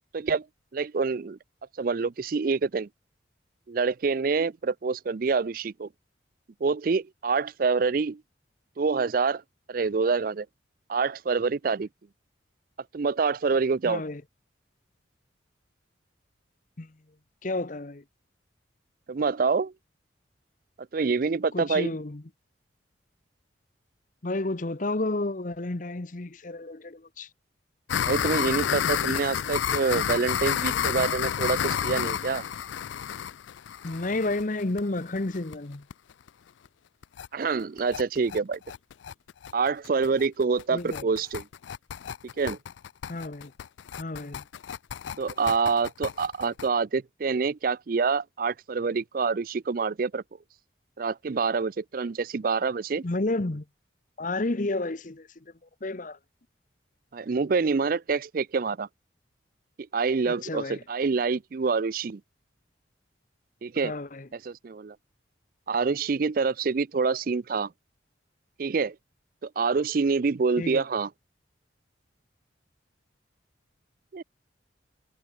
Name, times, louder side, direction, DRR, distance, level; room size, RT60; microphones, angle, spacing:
voice 1, 0.1-0.4 0.7-1.4 1.8-2.9 3.7-5.9 6.6-8.2 8.8-9.4 9.7-10.5 10.9-11.9 12.9-14.0 19.1-19.7 20.9-21.9 28.0-32.4 37.3-38.6 39.5-41.4 42.4-42.6 45.2-50.2 51.0-53.0 57.1-58.9 59.9-62.2 63.6-64.0 64.4-65.0 65.7-67.7 68.6-69.0 69.4-71.1 74.1-74.2, right 4 dB, 50° right, 0.4 m, -26 dB
voice 2, 13.8-14.2 16.8-16.9 17.4-18.0 21.5-22.2 24.2-27.3 33.8-35.9 40.7-41.1 43.1-43.5 44.0-44.4 53.0-53.6 54.2-55.4 55.8-56.2 60.3-60.8 63.8-64.3 70.6-70.8, left 2 dB, 40° left, 0.9 m, -31 dB
sound 1, 27.9-35.5 35.9-36.0 36.3-36.4 36.7-36.8 37.0-37.3 37.6-46.7, left 9 dB, 80° left, 0.4 m, -30 dB
head